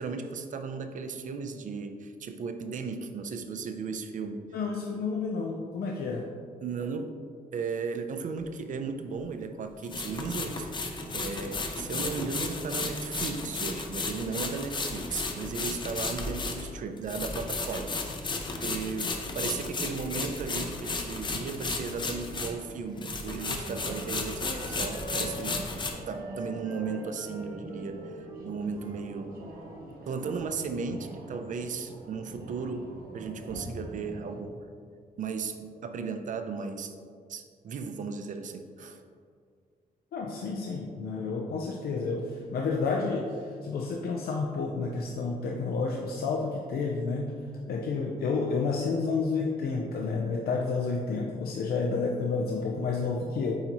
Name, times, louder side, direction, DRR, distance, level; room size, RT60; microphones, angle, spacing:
voice 1, 0.0-4.4 6.6-7.1 7.5-10.7 11.1-17.9 18.2-18.3 18.6-25.6 26.1-29.4 30.1-34.5 35.2-36.9 37.3-39.0, right 5 dB, 55° right, 8 dB, 0.5 m, -35 dB
voice 2, 4.5-6.3 40.1-47.3 47.7-53.6, left 4 dB, 80° left, 0 dB, 0.5 m, -30 dB
sound 1, 8.4-8.5 9.8-22.7 23.0-25.9, left 3 dB, 30° left, 0.6 m, -34 dB
Wind instrument woodwind instrument, 22.3-25.7 26.1-30.5, right 1 dB, 25° right, 0.9 m, -45 dB
sound 2, 23.6-34.4, right 2 dB, 70° right, 1.0 m, -44 dB
8.7 x 4.0 x 2.9 m, 2.1 s
wide cardioid pair, 155°, 16 cm